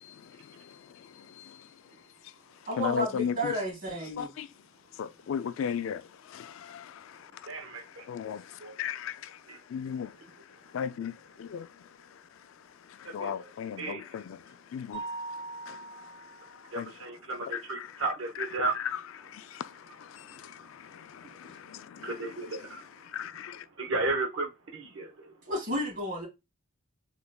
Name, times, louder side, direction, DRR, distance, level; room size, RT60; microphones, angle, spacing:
voice 1, 0.0-1.7 2.7-3.6 4.2-4.5 5.0-9.4 9.7-10.2 10.7-11.9 12.9-15.1 15.7-17.1 17.4-23.6, left 8 dB, 75° left, 0.3 m, -38 dB
voice 2, 2.7-4.3 25.5-26.3, equal, 45° right, 2.5 m, -32 dB
voice 3, 7.5-8.0 8.6-8.7 9.5-9.6 13.2-13.5 13.8-14.0 16.7-18.7 22.0-22.8 23.8-25.3, right 3 dB, 70° right, 0.8 m, -34 dB
Mallet percussion, 14.9-16.7, right 3 dB, 45° left, 1.1 m, -40 dB
3.8 x 3.3 x 2.2 m
head